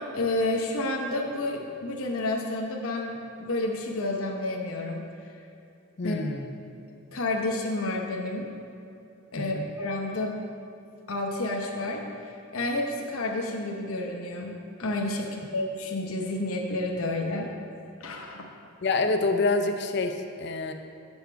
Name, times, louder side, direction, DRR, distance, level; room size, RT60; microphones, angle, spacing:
voice 1, 0.0-5.1 6.0-6.2 7.1-8.5 9.3-10.4 11.1-17.5 18.0-18.5, left 2 dB, 80° left, 1 dB, 0.9 m, -30 dB
voice 2, 6.0-6.5 9.5-9.7 18.8-20.7, left 3 dB, 50° left, 6 dB, 0.6 m, -26 dB
7.7 x 7.2 x 4.5 m, 2.7 s
head